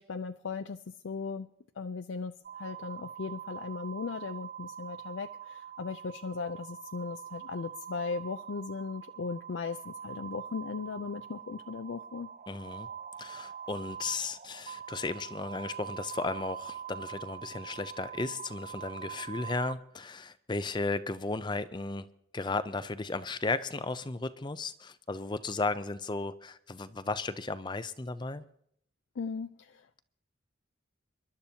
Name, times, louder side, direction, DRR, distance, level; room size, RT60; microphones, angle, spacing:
voice 1, 0.0-1.5 1.8-12.3 29.2-29.9, left 4 dB, 75° left, 0.4 m, -37 dB
sound 1, 2.4-19.7, right 8 dB, 35° right, 0.5 m, -44 dB
voice 2, 12.5-12.9 13.2-22.1 22.3-28.4, left 3 dB, 25° left, 0.5 m, -35 dB
27.0 x 12.0 x 2.8 m
head